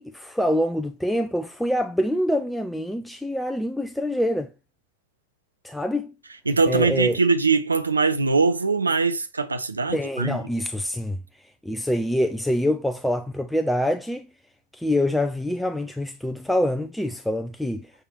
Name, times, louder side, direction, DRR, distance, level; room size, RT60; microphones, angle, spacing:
voice 1, 0.0-4.5 5.6-6.1 6.7-7.2 9.9-11.2 11.6-14.3 14.7-17.9, left 1 dB, ahead, 0.6 m, -25 dB
voice 2, 6.5-10.4, right 4 dB, 80° right, 1.1 m, -22 dB
7.0 x 6.4 x 4.3 m
figure-of-eight pair, 90°, 0 cm